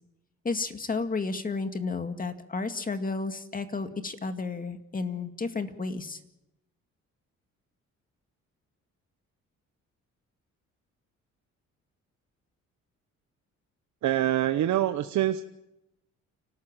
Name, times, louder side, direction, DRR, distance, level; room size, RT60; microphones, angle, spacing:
voice 1, 0.4-6.2, left 4 dB, 30° left, 7 dB, 2.1 m, -32 dB
voice 2, 14.0-15.4, right 12 dB, 70° right, 9 dB, 1.0 m, -25 dB
29.5 x 13.0 x 7.5 m, 0.89 s
cardioid pair, 90°, 30 cm